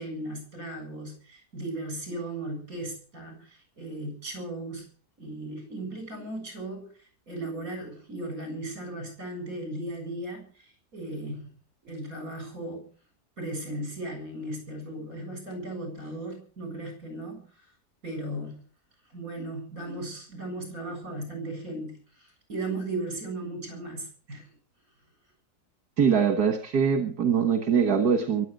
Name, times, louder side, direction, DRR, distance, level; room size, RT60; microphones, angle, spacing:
voice 1, 0.0-4.9 5.2-6.9 7.3-11.5 11.8-12.9 13.4-17.5 18.0-18.6 19.1-24.5, right 1 dB, 65° right, 5 dB, 8.1 m, -36 dB
voice 2, 26.0-28.5, right 6 dB, 85° right, 8 dB, 2.1 m, -23 dB
23.0 x 8.8 x 6.7 m, 0.42 s
omnidirectional pair, 1.6 m